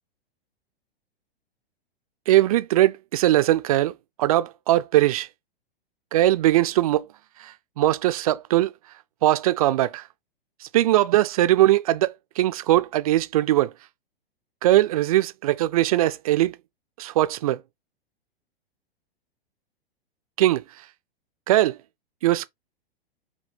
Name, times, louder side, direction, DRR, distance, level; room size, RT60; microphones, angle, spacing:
voice 1, 2.3-3.9 4.2-5.3 6.1-7.1 7.4-8.7 9.2-10.0 10.6-13.7 14.6-16.6 17.0-17.6 20.4-20.6 21.5-21.8 22.2-22.5, right 14 dB, 40° right, 0.4 m, -20 dB
5.1 x 2.7 x 3.3 m
figure-of-eight pair, 100°, 30 cm